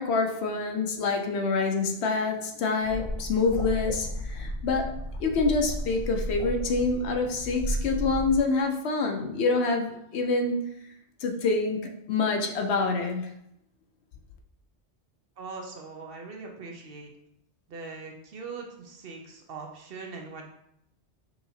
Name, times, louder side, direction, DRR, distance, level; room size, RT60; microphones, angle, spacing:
voice 1, 0.0-10.6 11.2-13.3, left 3 dB, 70° left, 4 dB, 0.9 m, -27 dB
sound 1, 2.8-8.4, equal, 45° left, 0.5 m, -33 dB
voice 2, 15.4-17.1 17.7-20.5, right 4 dB, 60° right, 1 dB, 0.8 m, -41 dB
5.5 x 2.8 x 2.7 m, 0.75 s
omnidirectional pair, 1.2 m